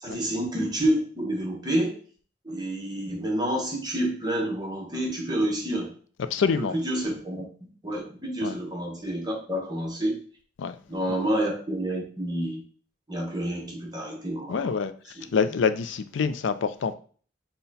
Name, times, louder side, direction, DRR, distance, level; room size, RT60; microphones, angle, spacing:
voice 1, 0.0-2.0 2.4-5.9 6.5-7.5 7.8-10.2 10.9-12.6 13.1-14.8 15.2-15.3, right 1 dB, 20° right, 1.0 m, -28 dB
voice 2, 6.3-6.7 8.4-8.5 10.6-10.7 11.1-11.2 14.5-14.9 15.3-16.9, left 5 dB, 70° left, 0.4 m, -26 dB
5.7 x 2.2 x 4.0 m
head